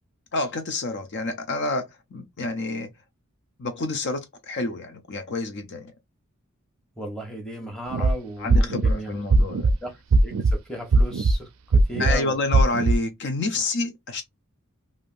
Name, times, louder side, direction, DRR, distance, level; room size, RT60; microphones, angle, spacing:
voice 1, 0.3-1.8 2.1-2.9 3.6-5.9 8.0-8.1 8.4-9.8 12.0-14.2, left 2 dB, 55° left, 0.5 m, -28 dB
voice 2, 7.0-9.5 9.8-9.9 10.2-12.4, right 1 dB, 5° left, 1.0 m, -35 dB
sound 1, 7.9-8.1 8.5-8.9 9.3-9.7 10.1-10.5 10.9-11.3 11.7-12.1 12.5-13.0, right 2 dB, 80° right, 0.4 m, -18 dB
3.3 x 2.6 x 2.4 m
head